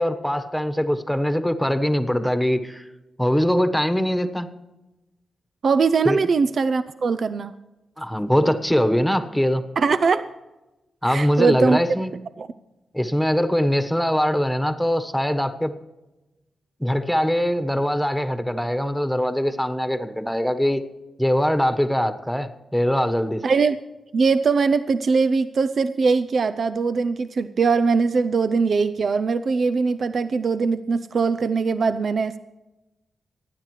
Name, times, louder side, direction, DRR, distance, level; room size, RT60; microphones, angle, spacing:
voice 1, 0.0-2.8 3.2-4.5 6.0-6.2 8.0-9.6 11.0-12.1 12.9-15.7 16.8-20.8 21.2-23.4, equal, ahead, 9 dB, 1.3 m, -22 dB
voice 2, 5.6-7.5 9.8-10.2 11.1-11.8 12.4-12.5 23.4-23.8 24.1-32.4, right 4 dB, 60° right, 12 dB, 0.5 m, -21 dB
28.0 x 9.8 x 3.3 m, 1.0 s
cardioid pair, 70°, 0 cm